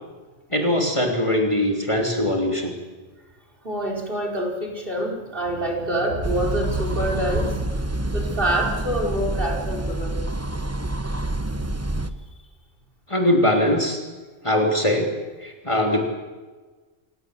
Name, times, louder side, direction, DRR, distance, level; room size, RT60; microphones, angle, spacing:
voice 1, 0.5-2.7 13.1-14.0 14.4-15.1 15.4-16.0, left 1 dB, 25° left, 1 dB, 3.1 m, -21 dB
voice 2, 3.6-7.8 8.1-10.2, right 1 dB, 45° right, 1 dB, 5.2 m, -26 dB
sound 1, 6.2-12.1, right 1 dB, 15° right, 1.0 m, -27 dB
28.5 x 17.5 x 7.9 m, 1.3 s
omnidirectional pair, 1.3 m